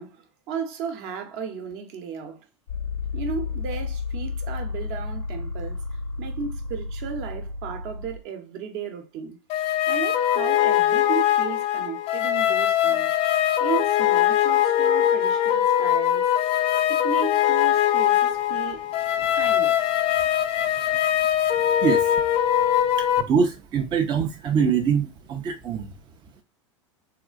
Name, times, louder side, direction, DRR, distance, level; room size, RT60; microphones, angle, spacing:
voice 1, 0.0-2.5 3.1-5.8 6.2-9.4 9.9-13.1 13.6-16.3 16.9-18.9 19.3-20.0, right 7 dB, 55° right, 0.7 m, -34 dB
sound 1, 2.7-8.2, left 4 dB, 75° left, 0.6 m, -32 dB
sound 2, 9.5-23.2, left 11 dB, 40° left, 0.4 m, -22 dB
voice 2, 21.8-22.2 23.0-25.9, right 6 dB, 30° right, 0.4 m, -24 dB
3.5 x 2.4 x 2.3 m
hypercardioid pair, 90°, 16 cm